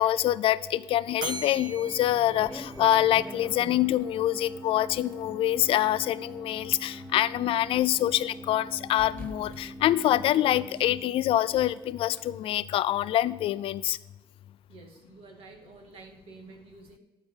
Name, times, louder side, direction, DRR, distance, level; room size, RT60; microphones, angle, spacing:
voice 1, 0.0-14.0, left 13 dB, 80° left, 17 dB, 0.4 m, -25 dB
sound 1, 1.2-12.6, right 1 dB, 20° right, 0.5 m, -45 dB
Bell, 1.2-3.5, right 3 dB, 50° right, 1.3 m, -40 dB
sound 2, 2.4-4.1 4.8-5.8 6.4-7.9 8.2-8.3 9.0-10.8 11.5-12.2, left 1 dB, 10° left, 1.5 m, -46 dB
voice 2, 14.7-17.0, right 3 dB, 90° right, 2 dB, 2.0 m, -49 dB
12.5 x 4.7 x 5.6 m, 1.2 s
cardioid pair, 120°, 9 cm